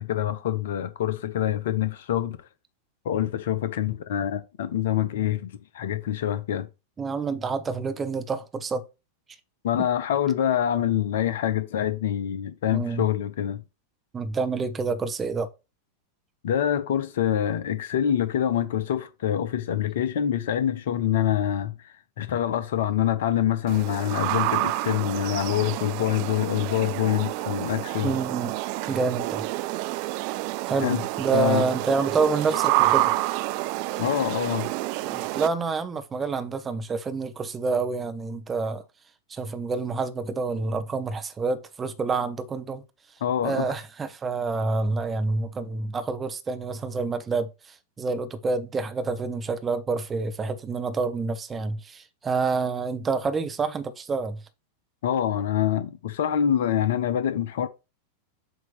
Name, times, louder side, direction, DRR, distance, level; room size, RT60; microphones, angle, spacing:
voice 1, 0.0-2.4 3.0-6.7 9.6-13.6 16.4-21.7 22.2-28.1 30.8-31.0 31.3-31.6 34.0-34.7 43.2-43.7 55.0-57.7, left 10 dB, 55° left, 0.8 m, -25 dB
voice 2, 7.0-8.8 12.7-13.1 14.1-15.5 28.0-28.5 28.9-29.4 30.7-33.1 35.0-38.8 39.3-42.8 43.4-54.4, right 4 dB, 20° right, 0.9 m, -28 dB
sound 1, 23.7-35.5, right 17 dB, 45° right, 0.4 m, -28 dB
7.5 x 2.9 x 5.7 m
figure-of-eight pair, 90°, 0 cm